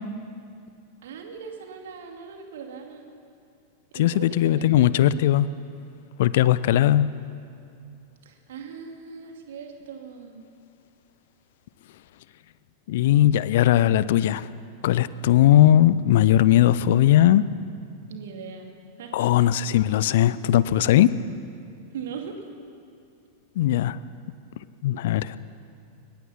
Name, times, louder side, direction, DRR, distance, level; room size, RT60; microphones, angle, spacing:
voice 1, 1.0-3.1 3.9-4.9 8.2-10.4 18.1-18.7 19.0-19.5 21.9-22.4, right 6 dB, 60° right, 3 dB, 2.6 m, -39 dB
voice 2, 3.9-5.5 6.2-7.1 12.9-14.5 14.8-17.5 19.1-21.1 23.6-24.0 24.8-25.4, left 12 dB, 55° left, 17 dB, 0.6 m, -19 dB
23.5 x 20.5 x 5.8 m, 2.4 s
figure-of-eight pair, 90°, 0 cm